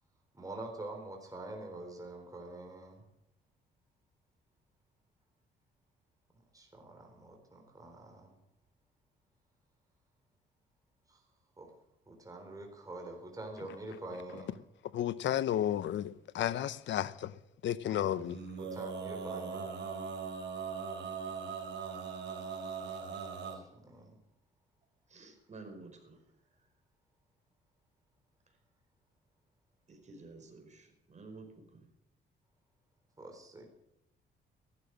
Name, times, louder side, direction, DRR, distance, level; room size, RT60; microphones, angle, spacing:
voice 1, 0.3-3.0 6.5-8.3 11.1-11.2 11.6-11.7 12.1-14.5 17.8-18.2 18.6-19.7 23.5-24.2 33.2-33.7, right 2 dB, 15° right, 3.8 m, -46 dB
voice 2, 14.9-17.3 17.6-18.4, left 11 dB, 70° left, 0.8 m, -32 dB
Male singing, 18.2-23.6, right 5 dB, 60° right, 3.8 m, -40 dB
voice 3, 25.1-26.2 29.9-31.8, right 3 dB, 35° right, 5.0 m, -51 dB
14.5 x 12.5 x 6.3 m
cardioid pair, 90°, 20 cm